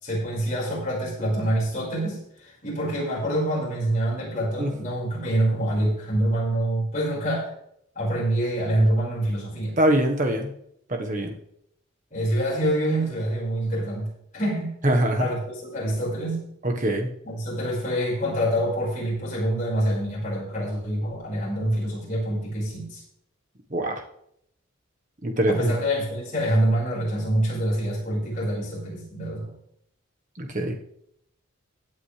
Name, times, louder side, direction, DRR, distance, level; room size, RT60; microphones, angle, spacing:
voice 1, 0.0-7.5 8.0-9.8 12.1-14.8 15.2-16.4 17.2-23.0 25.5-29.5, right 1 dB, 35° left, -5 dB, 5.4 m, -26 dB
voice 2, 9.8-10.5 10.9-11.3 14.8-15.2 16.8-17.1 23.7-24.0 25.2-25.7 30.4-30.7, right 1 dB, 35° right, 3 dB, 1.4 m, -23 dB
16.5 x 8.7 x 3.4 m, 0.73 s
head